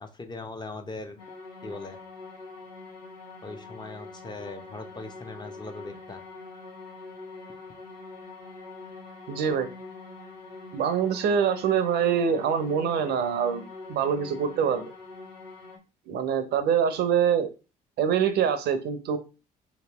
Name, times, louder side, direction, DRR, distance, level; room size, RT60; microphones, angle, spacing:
voice 1, 0.0-1.2 1.6-2.0 3.4-6.2, left 3 dB, 25° left, 6 dB, 0.8 m, -40 dB
sound 1, 1.2-15.8, left 3 dB, 90° left, 0.8 m, -44 dB
voice 2, 9.3-9.7 10.7-13.6 13.9-14.8 16.1-17.5 18.0-19.2, right 7 dB, 60° right, 10 dB, 0.7 m, -24 dB
3.1 x 3.0 x 3.0 m, 0.31 s
hypercardioid pair, 55°, 19 cm